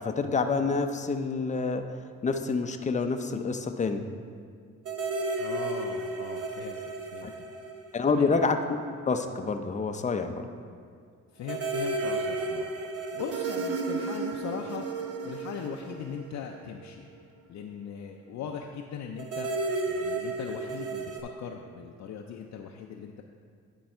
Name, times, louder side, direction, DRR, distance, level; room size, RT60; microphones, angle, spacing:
voice 1, 0.0-1.8 2.2-4.0 7.2-7.3 7.9-8.8 9.1-10.4, left 4 dB, 25° left, 7 dB, 0.5 m, -27 dB
sound 1, 4.8-8.6 8.9-9.0 11.4-16.9 19.2-21.2, right 3 dB, 50° right, 0.9 m, -33 dB
voice 2, 5.4-7.3 8.0-8.4 11.3-12.7 13.1-14.8 15.2-17.1 17.5-19.5 19.9-23.2, left 7 dB, 65° left, 2 dB, 0.5 m, -39 dB
10.5 x 4.7 x 4.4 m, 2.1 s
cardioid pair, 90°, 30 cm